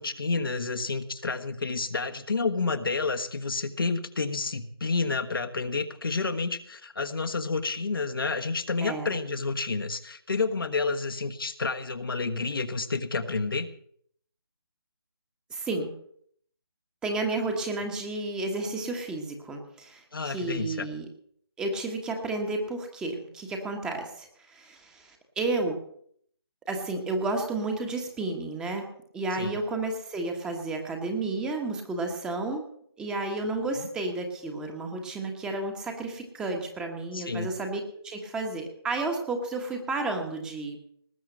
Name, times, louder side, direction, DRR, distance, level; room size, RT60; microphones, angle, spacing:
voice 1, 0.0-13.7 20.1-20.9 29.4-29.6 37.1-37.5, left 4 dB, 65° left, 6 dB, 1.4 m, -30 dB
voice 2, 8.8-9.1 15.5-15.9 17.0-21.0 21.6-25.8 26.7-28.9 29.1-32.6 33.0-40.9, right 2 dB, 5° right, 4 dB, 1.3 m, -32 dB
19.5 x 7.1 x 7.8 m, 0.64 s
figure-of-eight pair, 150°, 13 cm